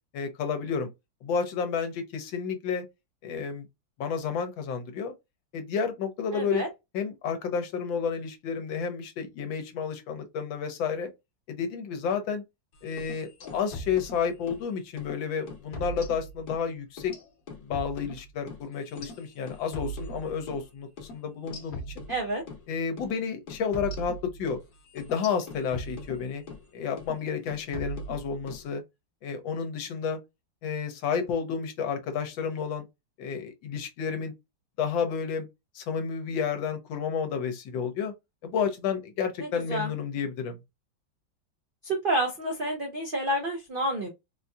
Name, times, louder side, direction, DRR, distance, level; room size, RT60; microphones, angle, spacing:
voice 1, 0.1-0.9 1.2-2.8 3.2-3.7 4.0-5.1 5.5-6.6 6.9-11.1 11.5-12.4 12.8-17.1 17.6-22.0 22.7-24.6 24.9-26.4 26.7-28.8 29.2-30.2 30.6-32.9 33.2-34.3 34.8-35.5 35.7-38.1 38.4-40.6, left 6 dB, 85° left, 1.5 m, -31 dB
voice 2, 6.3-6.7 22.1-22.4 39.4-39.9 41.8-44.1, right 1 dB, 85° right, 0.4 m, -29 dB
sound 1, 12.9-14.7 15.0-15.2 15.5-16.7 17.0-20.7 21.0-21.1 21.5-22.6 23.0-23.2 23.5-26.7 27.0-27.2 27.5-28.6, equal, 55° left, 1.2 m, -40 dB
4.3 x 2.6 x 2.3 m
omnidirectional pair, 2.1 m